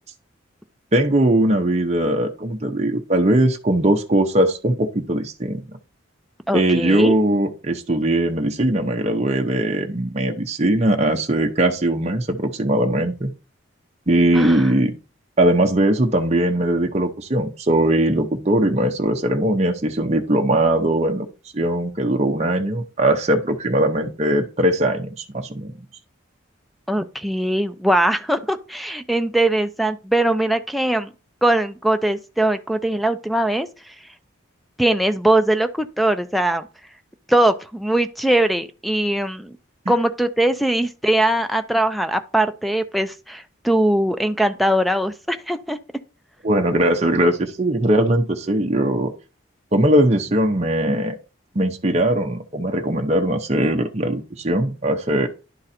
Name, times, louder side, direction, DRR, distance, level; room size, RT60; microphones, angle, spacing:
voice 1, 0.9-5.6 6.5-13.3 14.1-14.9 15.4-21.3 21.5-25.7 46.4-49.1 49.7-51.1 51.5-55.3, right 1 dB, 30° right, 0.7 m, -20 dB
voice 2, 6.5-7.2 14.3-14.7 26.9-31.1 31.4-33.9 34.8-36.7 37.3-39.6 39.9-45.8, right 1 dB, ahead, 0.4 m, -21 dB
11.0 x 3.9 x 4.2 m
head